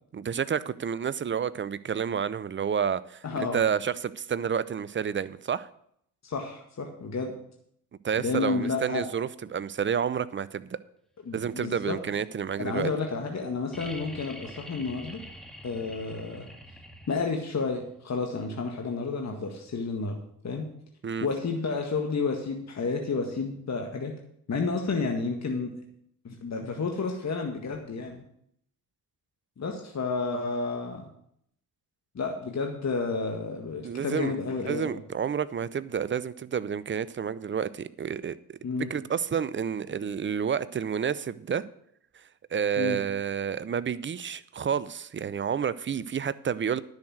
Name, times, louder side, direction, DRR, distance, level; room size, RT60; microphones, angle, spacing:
voice 1, 0.1-5.7 8.0-10.8 11.3-12.9 21.0-21.3 33.8-34.4 34.6-38.6 38.9-41.7 42.1-42.2 42.5-46.8, right 7 dB, 25° right, 17 dB, 0.6 m, -30 dB
voice 2, 3.2-3.6 6.2-7.3 8.2-9.0 11.3-12.0 12.6-15.2 15.6-16.5 17.1-20.2 20.4-20.7 21.2-24.1 24.5-25.7 26.2-28.2 29.6-31.0 32.2-35.0 38.6-38.9 42.8-43.0, left 4 dB, 35° left, 3 dB, 1.8 m, -31 dB
sound 1, 13.7-17.5 19.2-19.3, equal, ahead, 2.0 m, -45 dB
10.5 x 6.5 x 7.6 m, 0.70 s
hypercardioid pair, 45°, 45 cm